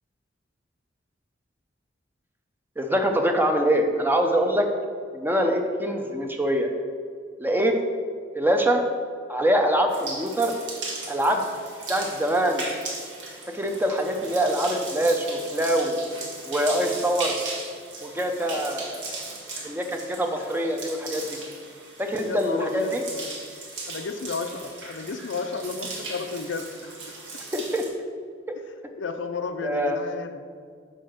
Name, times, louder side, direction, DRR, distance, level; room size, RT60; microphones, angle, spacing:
voice 1, 2.8-4.7 5.1-6.7 7.4-7.7 8.3-8.8 9.3-10.5 11.1-11.5 11.9-12.6 13.5-16.0 16.5-17.4 18.0-19.1 19.6-21.4 22.0-23.0 27.5-27.8 29.6-30.0, right 1 dB, 10° right, 4 dB, 0.6 m, -24 dB
sound 1, 9.9-27.9, right 3 dB, 90° right, 1.6 m, -37 dB
voice 2, 22.2-23.0 23.8-26.7 28.7-30.4, left 4 dB, 75° left, 8 dB, 0.5 m, -32 dB
6.2 x 4.6 x 6.4 m, 2.1 s
head